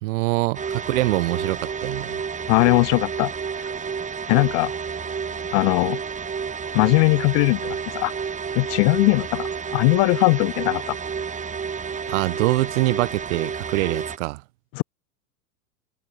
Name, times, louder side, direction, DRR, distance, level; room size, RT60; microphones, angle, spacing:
voice 1, 0.0-2.2 12.1-14.4, right 21 dB, 50° right, 0.5 m, -24 dB
sound 1, 0.5-14.2, right 6 dB, 15° right, 2.1 m, -30 dB
voice 2, 2.5-3.3 4.3-4.7 5.5-6.0 6.7-8.1 8.6-11.0 14.7-14.8, left 33 dB, 25° left, 0.3 m, -20 dB
hypercardioid pair, 105°, 50 cm